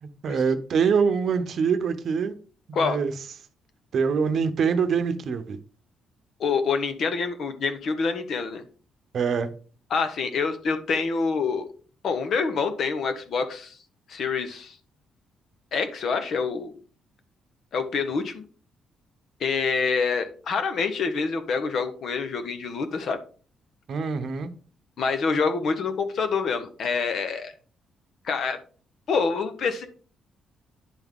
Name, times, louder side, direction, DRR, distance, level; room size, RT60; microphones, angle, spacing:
voice 1, 0.0-2.3 2.8-3.1 3.9-5.6 9.1-9.5 23.9-24.5, right 6 dB, 60° right, 10 dB, 0.8 m, -24 dB
voice 2, 6.4-8.6 9.9-11.7 12.0-13.8 14.1-14.8 15.7-16.7 17.7-18.4 19.4-23.2 25.0-27.5 28.2-28.6 29.1-29.9, left 5 dB, 60° left, 9 dB, 1.0 m, -26 dB
10.0 x 3.6 x 3.6 m, 0.41 s
cardioid pair, 90°, 0 cm